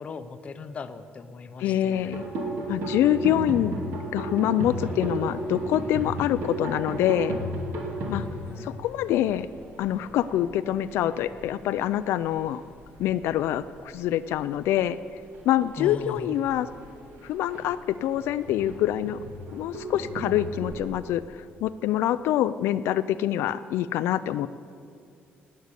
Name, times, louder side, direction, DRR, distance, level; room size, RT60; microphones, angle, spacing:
voice 1, 0.0-2.1 8.1-8.8 15.8-16.3, left 4 dB, 30° left, 10 dB, 0.7 m, -38 dB
voice 2, 1.6-2.2 2.7-3.7 4.1-7.4 8.1-8.2 8.6-9.5 9.8-12.6 13.0-15.0 15.5-16.7 17.2-19.2 19.5-21.2 21.6-24.5, left 12 dB, 85° left, 12 dB, 0.4 m, -25 dB
sound 1, 1.9-13.3 13.6-14.0 14.3-20.9, right 1 dB, 65° right, 2.5 m, -35 dB
18.5 x 6.5 x 8.3 m, 2.3 s
cardioid pair, 155°, 4 cm